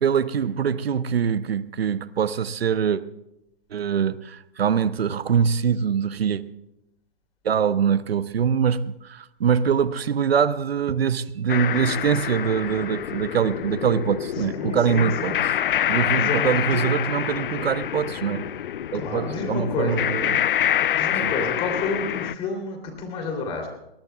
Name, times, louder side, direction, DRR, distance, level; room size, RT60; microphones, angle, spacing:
voice 1, 0.0-3.0 3.7-6.4 7.4-15.5 15.9-18.4 18.9-20.4 21.2-21.3, right 7 dB, 80° right, 0.8 m, -23 dB
sound 1, 11.5-22.3, left 11 dB, 60° left, 0.4 m, -26 dB
voice 2, 14.4-15.4 16.1-16.8 18.9-20.1 20.9-23.7, left 3 dB, 20° left, 3.1 m, -30 dB
22.0 x 20.5 x 2.3 m
hypercardioid pair, 155°, 30 cm